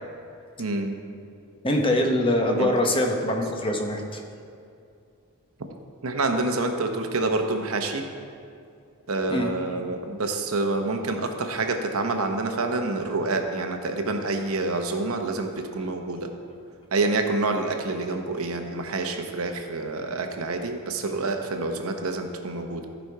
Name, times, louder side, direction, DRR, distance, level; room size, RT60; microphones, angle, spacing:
voice 1, 0.6-0.9 2.4-2.7 6.0-8.1 9.1-16.3 16.9-22.9, right 2 dB, 70° right, 5 dB, 0.9 m, -27 dB
voice 2, 1.6-4.2 9.3-9.9, left 1 dB, 25° left, 2 dB, 0.9 m, -24 dB
14.5 x 5.3 x 4.7 m, 2.5 s
head